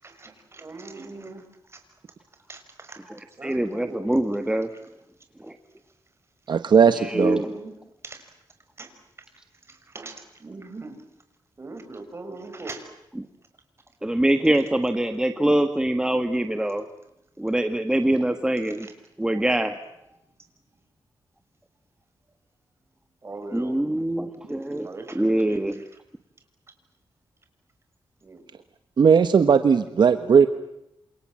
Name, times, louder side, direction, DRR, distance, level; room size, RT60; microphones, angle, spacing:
voice 1, 0.0-1.8 2.5-3.1 3.4-4.1 6.8-7.7 8.0-8.3 8.8-8.9 9.7-11.0 11.6-12.9 18.6-18.9 20.1-20.2 23.2-23.8 24.8-25.9 28.2-28.4 29.4-29.5, right 3 dB, 30° right, 6 dB, 6.2 m, -40 dB
voice 2, 3.4-4.7 5.4-5.6 7.1-7.5 14.0-16.9 17.4-18.9 19.2-19.8 23.5-24.9 25.1-25.8, right 1 dB, 10° right, 8 dB, 1.5 m, -24 dB
voice 3, 6.5-7.4 29.0-30.5, right 6 dB, 60° right, 10 dB, 1.4 m, -17 dB
28.0 x 28.0 x 7.6 m, 0.84 s
wide cardioid pair, 115°, 8 cm